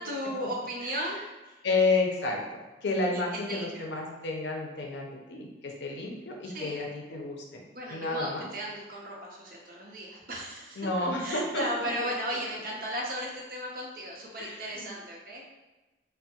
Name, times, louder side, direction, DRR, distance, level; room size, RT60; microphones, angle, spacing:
voice 1, 0.0-1.6 3.0-3.2 3.5-3.8 6.4-6.9 7.7-15.4, equal, 50° right, -2 dB, 0.6 m, -36 dB
voice 2, 1.6-2.4 2.8-7.6 7.9-8.5 10.8-12.1 14.4-14.9, left 3 dB, 75° left, 0 dB, 0.6 m, -31 dB
3.4 x 2.1 x 2.8 m, 1.1 s
head